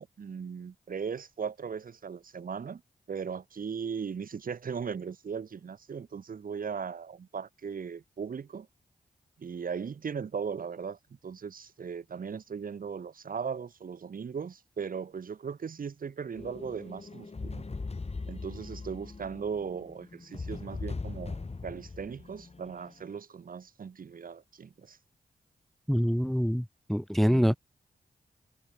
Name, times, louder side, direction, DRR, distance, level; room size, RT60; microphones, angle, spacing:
voice 1, 0.0-2.8 3.1-8.7 9.4-17.7 18.3-25.0, right 6 dB, 60° right, 1.6 m, -38 dB
sound 1, 16.3-23.1, left 3 dB, 40° left, 3.4 m, -40 dB
voice 2, 25.9-27.6, equal, ahead, 0.4 m, -25 dB
supercardioid pair, 45°, 16 cm